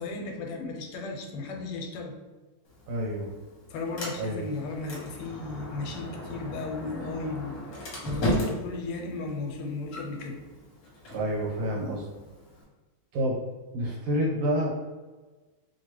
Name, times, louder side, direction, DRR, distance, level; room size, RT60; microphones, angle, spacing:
voice 1, 0.0-2.2 3.7-7.6 8.0-10.4, left 3 dB, 90° left, 2 dB, 1.5 m, -35 dB
Sliding door, 2.7-12.6, equal, 50° left, 1.2 m, -37 dB
voice 2, 2.9-3.3 4.2-4.4 11.1-12.0 13.1-13.4 13.7-14.9, equal, 80° right, -4 dB, 1.8 m, -28 dB
3.3 x 2.8 x 3.0 m, 1.3 s
omnidirectional pair, 2.4 m